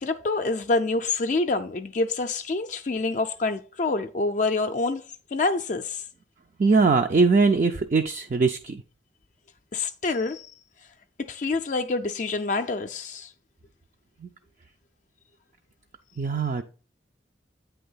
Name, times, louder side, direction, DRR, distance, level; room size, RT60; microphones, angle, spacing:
voice 1, 0.0-5.0 5.3-6.0 9.7-10.5 11.2-13.3, left 3 dB, 40° left, 0.4 m, -27 dB
voice 2, 6.6-8.8 14.2-14.3 16.2-16.6, right 4 dB, 40° right, 0.4 m, -21 dB
8.6 x 3.4 x 5.4 m
head